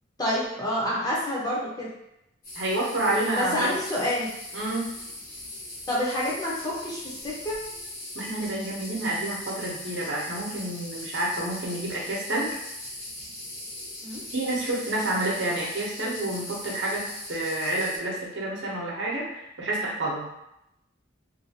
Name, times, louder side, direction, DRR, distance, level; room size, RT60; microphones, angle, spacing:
voice 1, 0.2-1.9 3.3-4.3 5.9-7.6 14.0-14.2, left 1 dB, 20° left, -5 dB, 0.6 m, -28 dB
sound 1, 2.4-18.0, left 1 dB, 45° left, 1.0 m, -40 dB
voice 2, 2.5-3.8 4.5-4.9 8.1-12.6 14.3-20.3, right 1 dB, 70° right, -4 dB, 0.8 m, -29 dB
2.6 x 2.4 x 2.8 m, 0.82 s
head